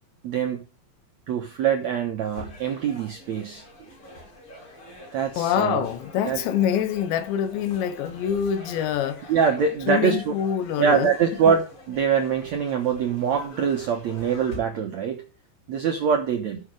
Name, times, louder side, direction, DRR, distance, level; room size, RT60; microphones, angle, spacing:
voice 1, 0.2-0.6 1.3-3.6 5.1-5.9 6.2-6.4 9.3-10.3 10.8-15.2 15.7-16.6, right 7 dB, 75° right, 1.6 m, -24 dB
sound 1, 2.2-14.6, left 1 dB, 30° left, 4.1 m, -45 dB
voice 2, 5.4-9.3 9.9-11.1 11.5-11.6, left 9 dB, 90° left, 3.4 m, -25 dB
13.5 x 6.7 x 4.8 m
omnidirectional pair, 4.9 m